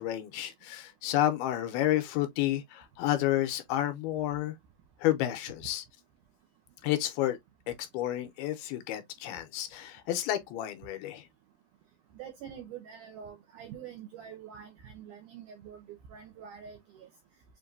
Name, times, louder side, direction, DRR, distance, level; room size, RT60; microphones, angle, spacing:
voice 1, 0.0-4.5 5.0-5.8 6.8-7.4 7.7-11.3, left 13 dB, 85° left, 2.6 m, -30 dB
voice 2, 12.2-15.8 16.1-17.1, right 8 dB, 80° right, 1.8 m, -46 dB
7.1 x 2.6 x 2.6 m
omnidirectional pair, 4.5 m